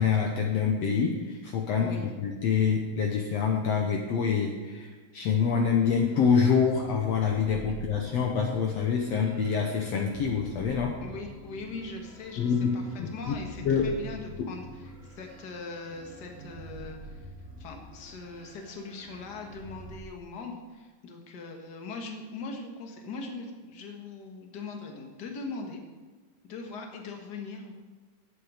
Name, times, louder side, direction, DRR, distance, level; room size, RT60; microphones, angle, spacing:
voice 1, 0.0-4.9 5.1-11.0 12.4-13.9 14.4-14.5, left 6 dB, 65° left, 2 dB, 2.0 m, -26 dB
sound 1, 5.6-20.0, right 2 dB, 30° right, 1.3 m, -46 dB
voice 2, 11.0-17.3 17.6-25.8 26.4-27.7, left 3 dB, 40° left, 2 dB, 1.9 m, -41 dB
19.0 x 8.4 x 5.1 m, 1.4 s
omnidirectional pair, 3.5 m